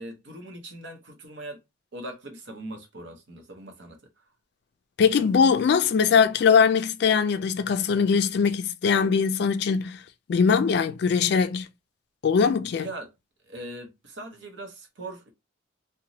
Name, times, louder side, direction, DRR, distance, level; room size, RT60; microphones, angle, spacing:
voice 1, 0.0-1.6 1.9-4.0 12.8-13.1 13.5-15.3, right 1 dB, 65° right, 0.8 m, -40 dB
voice 2, 5.0-10.0 10.3-11.7 12.2-12.9, left 6 dB, 55° left, 0.3 m, -21 dB
2.9 x 2.1 x 2.7 m
head